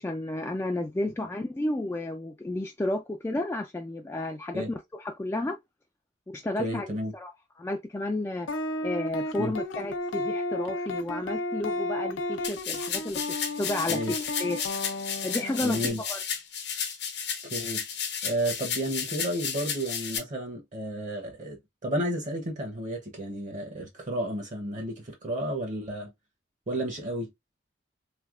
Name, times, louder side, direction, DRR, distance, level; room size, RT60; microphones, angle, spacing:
voice 1, 0.0-5.6 6.3-6.9 7.1-7.3 7.6-8.5 8.8-13.2 13.6-14.6 15.2-15.8 16.1-16.2, left 2 dB, 15° left, 0.3 m, -32 dB
voice 2, 6.6-7.1 9.4-9.5 13.9-14.1 15.6-16.0 17.4-17.8 18.2-26.1 26.7-27.3, right 1 dB, 45° right, 0.8 m, -32 dB
sound 1, 8.5-15.9, left 1 dB, 85° left, 0.5 m, -33 dB
sound 2, 12.4-20.2, left 7 dB, 65° left, 0.9 m, -33 dB
3.3 x 2.7 x 2.4 m
head